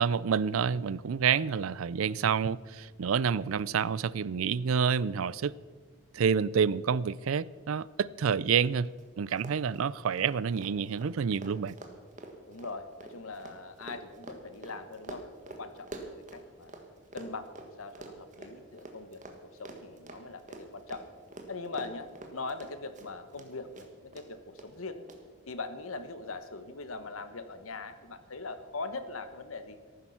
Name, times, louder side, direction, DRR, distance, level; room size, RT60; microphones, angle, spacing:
voice 1, 0.0-5.5 6.1-8.9 9.2-11.8, right 6 dB, 85° right, 0.4 m, -28 dB
Run, 8.5-8.6 8.9-9.0 9.3-16.8 17.1-23.5 23.7-24.2 24.6-24.7 25.1-25.2, right 2 dB, 35° right, 1.5 m, -46 dB
voice 2, 12.5-15.2 15.6-16.7 17.1-21.0 21.5-25.0 25.5-29.8, left 3 dB, 90° left, 1.2 m, -41 dB
14.5 x 12.0 x 5.7 m
head